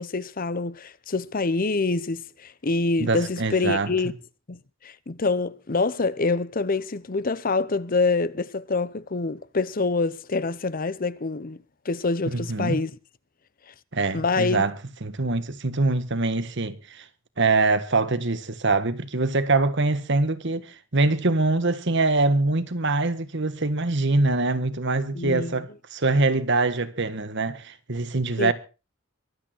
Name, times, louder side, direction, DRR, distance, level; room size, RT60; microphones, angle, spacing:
voice 1, 0.0-4.1 4.5-11.6 11.8-12.9 14.1-14.6 25.2-25.6 28.4-28.5, left 3 dB, 45° left, 0.8 m, -26 dB
voice 2, 3.0-4.1 12.2-12.8 13.9-14.7 15.0-17.0 17.4-28.5, right 3 dB, 60° right, 1.6 m, -24 dB
23.0 x 9.0 x 4.5 m
head